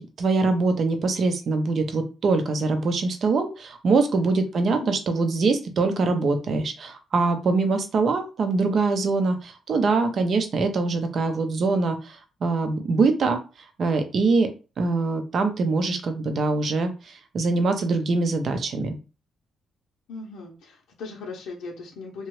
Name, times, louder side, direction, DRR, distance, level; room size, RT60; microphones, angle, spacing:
voice 1, 0.0-13.4 13.8-14.5 14.8-19.0, right 3 dB, 55° right, 7 dB, 0.6 m, -23 dB
voice 2, 20.1-22.3, left 3 dB, 80° left, -2 dB, 0.6 m, -38 dB
2.8 x 2.3 x 3.1 m, 0.32 s
cardioid pair, 90°, 0 cm